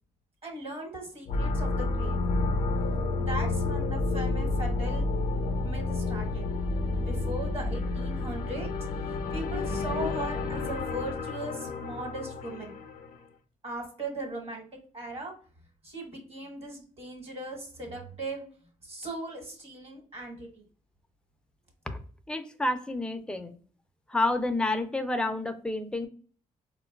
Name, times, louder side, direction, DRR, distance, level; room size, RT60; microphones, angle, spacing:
voice 1, 0.4-2.2 3.2-5.0 5.6-6.5 7.0-8.7 9.0-12.7 13.6-14.6 14.9-15.3 15.8-18.5 18.8-20.6, right 1 dB, 45° right, 1 dB, 1.2 m, -38 dB
sound 1, 1.3-13.2, left 3 dB, 65° left, 0.5 m, -30 dB
voice 2, 22.3-23.5 24.1-26.1, left 2 dB, 5° left, 7 dB, 0.4 m, -29 dB
3.8 x 2.2 x 2.2 m, 0.44 s
cardioid pair, 90°, 14 cm